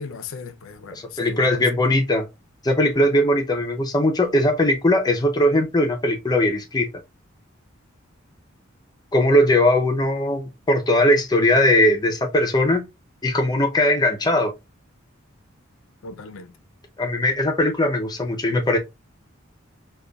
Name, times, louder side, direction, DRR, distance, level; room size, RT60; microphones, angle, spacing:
voice 1, 0.0-1.5 16.0-16.5, left 4 dB, 75° left, 0.5 m, -37 dB
voice 2, 0.9-2.3 2.6-6.9 9.1-12.8 13.2-14.5 17.0-18.8, left 1 dB, 20° left, 0.5 m, -19 dB
5.1 x 2.3 x 2.2 m
head